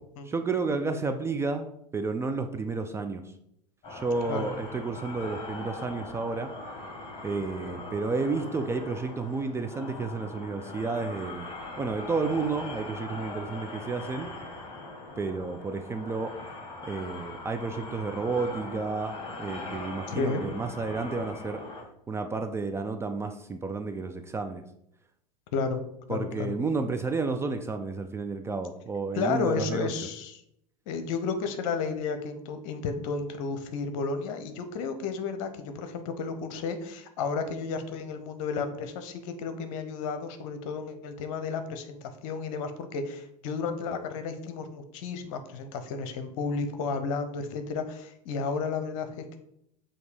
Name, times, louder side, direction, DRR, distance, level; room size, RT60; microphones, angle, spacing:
voice 1, 0.3-1.7 1.9-3.3 3.9-6.5 7.2-11.5 11.8-14.3 15.2-16.3 16.9-21.6 22.1-24.6 26.1-29.9, right 4 dB, 10° right, 6 dB, 0.4 m, -31 dB
sound 1, 3.8-21.8, left 2 dB, 25° left, 2.1 m, -41 dB
voice 2, 20.1-20.4 25.5-25.8 26.1-26.6 29.1-30.4 30.9-49.4, left 4 dB, 50° left, 9 dB, 0.9 m, -32 dB
7.8 x 2.9 x 5.0 m, 0.75 s
figure-of-eight pair, 85°, 21 cm